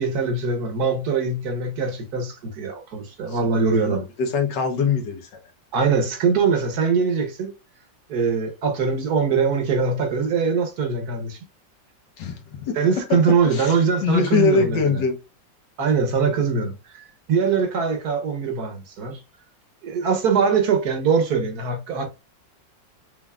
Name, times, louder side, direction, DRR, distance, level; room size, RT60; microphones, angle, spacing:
voice 1, 0.0-4.0 5.7-7.5 8.1-11.4 12.7-15.0 15.8-19.2 19.8-22.1, right 5 dB, 60° right, 1.4 m, -22 dB
voice 2, 3.3-5.4 12.2-12.8 13.5-15.2 16.4-16.5, left 5 dB, 70° left, 1.7 m, -23 dB
5.8 x 3.8 x 2.4 m
omnidirectional pair, 2.0 m